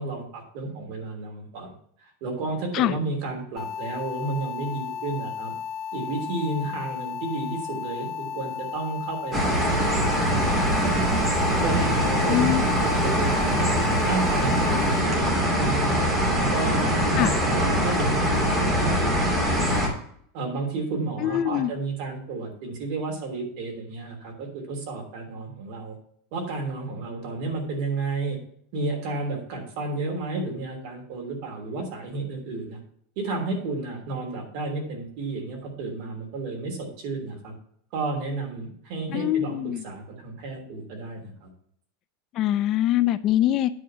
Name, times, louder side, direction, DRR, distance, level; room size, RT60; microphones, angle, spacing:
voice 1, 0.0-1.7 2.0-5.5 5.9-11.2 11.6-13.7 14.0-16.0 16.3-19.9 20.3-26.0 26.3-28.4 28.7-32.8 33.1-37.5 37.9-41.5, right 3 dB, 50° right, 1 dB, 3.3 m, -32 dB
sound 1, 3.6-15.0, left 8 dB, 10° left, 1.7 m, -34 dB
sound 2, 9.3-19.9, equal, 15° right, 2.4 m, -23 dB
voice 2, 12.3-12.6 17.2-17.3 21.2-21.7 39.1-39.8 42.3-43.7, left 12 dB, 35° left, 14 dB, 0.4 m, -23 dB
9.9 x 4.0 x 7.4 m, 0.64 s
supercardioid pair, 165°, 0 cm